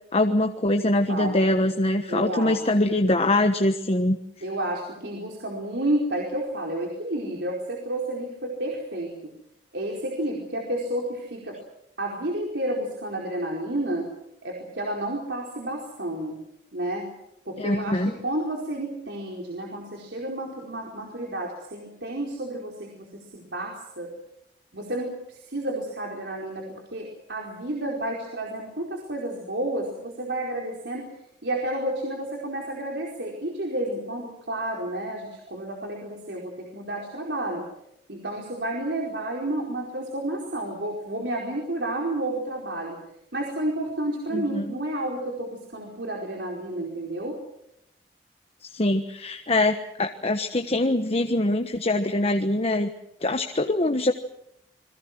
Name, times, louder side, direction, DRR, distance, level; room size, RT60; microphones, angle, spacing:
voice 1, 0.1-4.2 17.6-18.1 44.3-44.7 48.7-52.9 53.2-54.1, left 1 dB, 35° left, 5 dB, 1.3 m, -23 dB
voice 2, 1.1-1.6 2.1-2.6 4.4-9.1 9.7-11.6 12.0-14.1 14.4-16.4 16.7-17.1 17.5-24.1 24.7-31.1 31.4-37.6 38.1-43.0 43.3-47.4, right 1 dB, 75° right, -1 dB, 4.7 m, -31 dB
29.5 x 22.5 x 6.2 m, 0.79 s
head